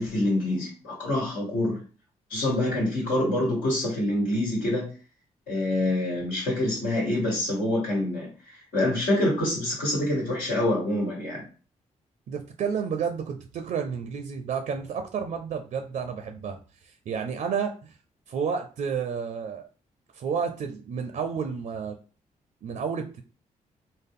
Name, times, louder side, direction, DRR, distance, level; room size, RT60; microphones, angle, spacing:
voice 1, 0.0-1.8 2.3-4.9 5.5-11.4, left 1 dB, 90° left, -6 dB, 1.5 m, -26 dB
voice 2, 12.3-16.6 16.8-17.9 18.3-19.6 20.1-22.0 22.6-23.2, right 6 dB, 65° right, 6 dB, 0.4 m, -31 dB
3.6 x 2.0 x 3.6 m, 0.38 s
cardioid pair, 65°, 14 cm